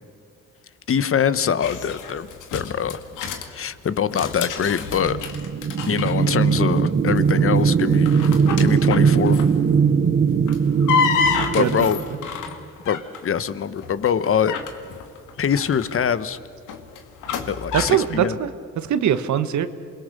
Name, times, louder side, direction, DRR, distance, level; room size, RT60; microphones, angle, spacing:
voice 1, 0.9-2.3 2.5-3.0 3.5-5.2 5.9-8.1 8.6-9.4 11.5-12.0 12.8-14.6 15.4-16.4 17.5-18.4, left 7 dB, 45° left, 14 dB, 1.2 m, -23 dB
sound 1, 1.6-3.5 4.0-6.6 6.9-7.3 7.9-9.7 10.3-13.3 13.8-18.1, left 6 dB, 85° left, 2.2 m, -28 dB
sound 2, 4.8-12.5, right 6 dB, 40° right, 1.2 m, -20 dB
voice 2, 17.7-18.5 18.8-19.7, right 9 dB, 70° right, 11 dB, 1.4 m, -21 dB
28.0 x 22.0 x 6.8 m, 2.4 s
cardioid pair, 90°, 30 cm